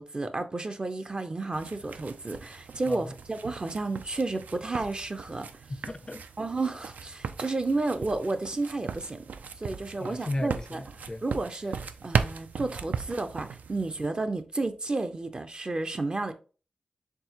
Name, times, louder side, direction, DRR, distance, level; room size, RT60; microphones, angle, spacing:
voice 1, 0.0-5.5 6.4-9.3 9.6-10.8 11.2-16.3, right 2 dB, 35° right, 0.5 m, -32 dB
sound 1, 1.5-14.1, right 6 dB, 90° right, 0.3 m, -37 dB
voice 2, 5.7-6.2 10.0-11.2, left 1 dB, 25° left, 0.4 m, -35 dB
4.5 x 3.4 x 2.8 m
wide cardioid pair, 70°, 3 cm